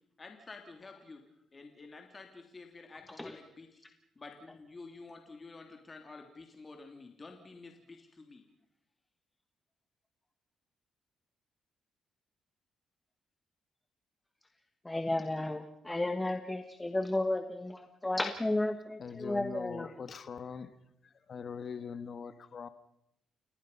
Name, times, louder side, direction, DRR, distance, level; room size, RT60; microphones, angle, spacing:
voice 1, 0.2-1.2 1.5-3.8 4.2-8.4, left 3 dB, 30° left, 3 dB, 3.1 m, -50 dB
voice 2, 14.8-19.9, left 2 dB, 15° left, 8 dB, 1.3 m, -33 dB
voice 3, 19.0-20.7 21.0-22.7, left 6 dB, 50° left, 11 dB, 1.4 m, -42 dB
29.5 x 17.5 x 5.6 m, 0.80 s
cardioid pair, 90°, 0 cm